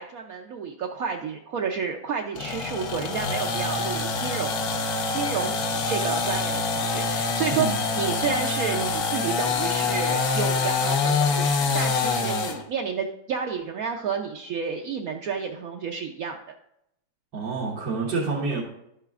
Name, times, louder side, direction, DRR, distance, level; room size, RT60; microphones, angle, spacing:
voice 1, 0.0-4.6 5.1-16.4, right 6 dB, 65° right, 2 dB, 0.9 m, -30 dB
sound 1, 2.4-12.6, left 4 dB, 65° left, 1.3 m, -25 dB
voice 2, 17.3-18.6, right 4 dB, 90° right, -4 dB, 2.0 m, -27 dB
11.5 x 8.9 x 2.4 m, 0.79 s
omnidirectional pair, 1.8 m